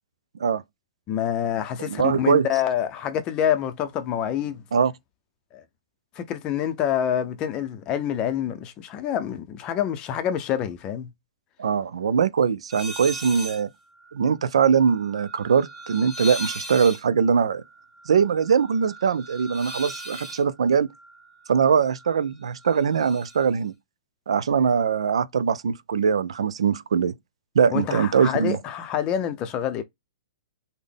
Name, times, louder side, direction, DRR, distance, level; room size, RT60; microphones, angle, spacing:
voice 1, 1.1-4.6 5.5-5.6 6.2-11.1 27.7-29.8, left 9 dB, 30° left, 0.5 m, -27 dB
voice 2, 1.9-2.5 4.7-4.9 11.6-13.7 14.1-17.6 18.1-20.9 21.5-23.7 24.3-27.1 27.6-28.6, right 6 dB, 85° right, 0.3 m, -22 dB
sound 1, 12.7-13.6 13.9-22.1 22.4-23.4, right 1 dB, ahead, 1.1 m, -39 dB
3.8 x 2.1 x 3.4 m
hypercardioid pair, 140°, 3 cm